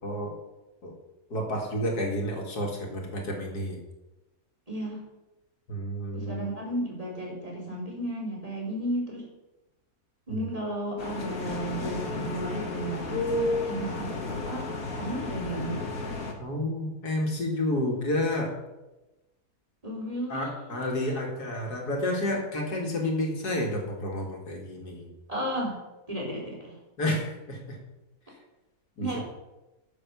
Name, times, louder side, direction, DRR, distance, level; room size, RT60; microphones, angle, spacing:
voice 1, 0.0-0.4 0.8-1.0 1.3-3.8 5.7-6.4 10.3-10.5 16.4-18.5 20.3-25.1 27.0-27.8 29.0-29.2, left 1 dB, 90° left, 1 dB, 2.7 m, -30 dB
voice 2, 4.7-5.0 6.1-9.2 10.3-13.2 13.6-15.9 19.8-20.7 25.3-25.8 26.1-26.8 29.0-29.2, right 1 dB, 20° right, -2 dB, 3.7 m, -33 dB
sound 1, 11.0-16.3, left 2 dB, 65° left, 2.1 m, -32 dB
11.0 x 7.1 x 6.9 m, 1.0 s
omnidirectional pair, 1.6 m